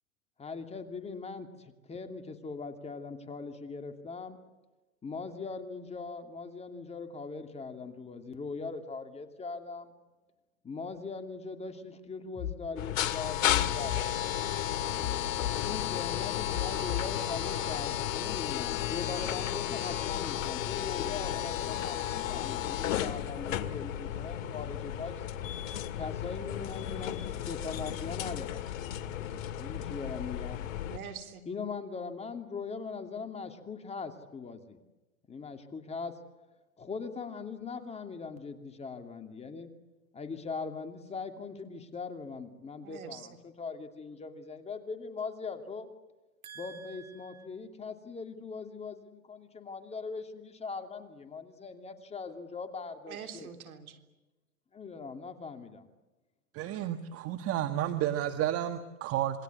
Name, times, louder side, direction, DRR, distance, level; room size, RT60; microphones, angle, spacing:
voice 1, 0.4-4.4 5.0-9.9 10.6-14.0 15.6-25.2 26.0-28.6 29.6-30.7 31.5-34.8 35.3-36.1 36.8-39.7 40.1-45.9 46.6-53.5 54.7-55.9, left 4 dB, 15° left, 6 dB, 2.7 m, -40 dB
sound 1, 12.3-12.6 13.5-14.1 15.0-15.6 16.5-17.1, left 12 dB, 45° left, 7.6 m, -35 dB
sound 2, 12.8-31.0, left 11 dB, 65° left, 2.2 m, -33 dB
voice 2, 30.9-31.4 42.8-43.2 46.4-47.5 53.1-54.0, right 7 dB, 75° right, 7 dB, 3.6 m, -45 dB
voice 3, 56.5-59.4, right 12 dB, 30° right, 9 dB, 1.5 m, -31 dB
27.5 x 22.0 x 8.5 m, 1.1 s
hypercardioid pair, 125°, 43 cm